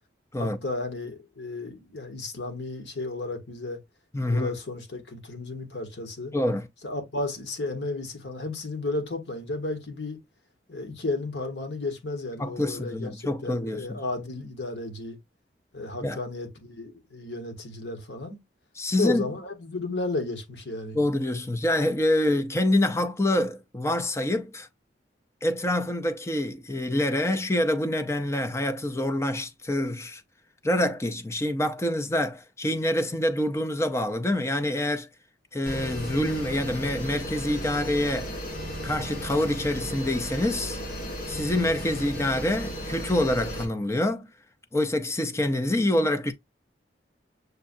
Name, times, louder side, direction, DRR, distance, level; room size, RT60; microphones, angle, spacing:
voice 1, 0.4-3.8 4.2-6.3 6.8-10.2 10.7-15.2 15.7-18.4 19.0-21.0, left 2 dB, 85° left, 1.4 m, -33 dB
voice 2, 4.1-4.5 6.3-6.7 12.4-14.0 16.0-16.2 18.8-19.3 20.9-24.7 25.4-30.2 30.6-35.1 35.5-38.3 38.8-40.8 41.3-44.3 44.7-46.3, left 1 dB, 15° left, 0.5 m, -26 dB
sound 1, 35.7-43.7, equal, 55° left, 1.5 m, -35 dB
6.6 x 2.3 x 2.6 m
head